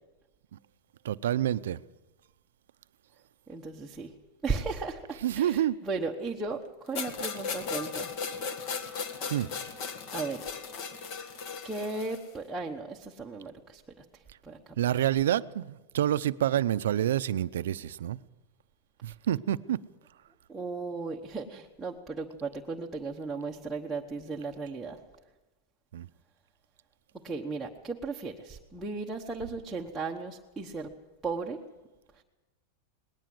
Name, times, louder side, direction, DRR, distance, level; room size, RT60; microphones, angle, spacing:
voice 1, 1.0-1.8 5.2-5.8 9.3-9.5 14.8-18.2 19.0-19.8 25.9-26.1, right 11 dB, 85° right, 0.6 m, -28 dB
voice 2, 3.5-4.1 4.4-6.6 6.9-8.1 10.1-10.4 11.6-13.8 14.4-14.6 14.9-15.0 20.5-25.0 27.2-30.9 31.2-31.6, right 4 dB, 5° right, 1.1 m, -35 dB
sound 1, 6.9-12.3, left 5 dB, 40° left, 1.9 m, -37 dB
20.0 x 18.5 x 7.8 m
supercardioid pair, 165°, 0 cm